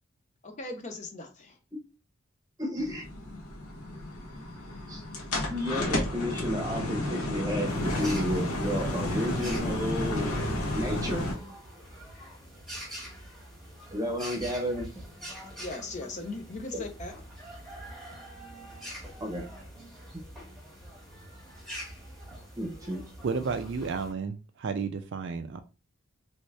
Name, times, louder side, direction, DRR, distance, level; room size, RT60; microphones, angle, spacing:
voice 1, 0.4-1.6 15.6-17.1, left 2 dB, 30° left, 0.4 m, -38 dB
voice 2, 2.6-3.1 4.9-5.0 5.5-10.3 10.7-11.3 13.9-14.9 16.7-16.8 19.2-19.5 22.5-23.0, equal, 15° right, 0.8 m, -32 dB
sound 1, 2.8-11.3, left 1 dB, 80° left, 1.0 m, -32 dB
sound 2, 7.6-24.1, equal, ahead, 1.2 m, -44 dB
voice 3, 23.2-25.6, right 5 dB, 50° right, 0.3 m, -32 dB
3.1 x 2.7 x 3.1 m
head